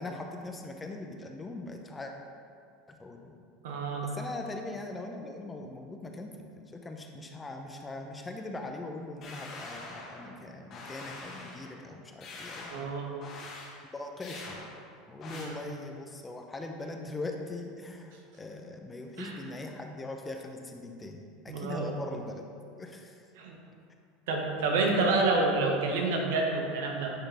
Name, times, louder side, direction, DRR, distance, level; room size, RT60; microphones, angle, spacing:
voice 1, 0.0-2.1 2.9-3.4 4.0-12.9 13.9-14.7 15.1-22.5 22.8-23.2, left 2 dB, 15° left, 3 dB, 0.6 m, -41 dB
voice 2, 3.6-4.0 12.7-13.1 15.3-15.6 19.2-19.3 21.5-21.9 23.4-23.6 24.3-27.1, right 3 dB, 80° right, 0 dB, 1.2 m, -28 dB
sound 1, 9.2-10.3 10.7-11.7 12.2-12.9 13.2-13.7 14.2-14.6 15.2-15.5, left 3 dB, 45° left, 1.5 m, -44 dB
10.5 x 3.9 x 3.5 m, 2.3 s
supercardioid pair, 115°, 0 cm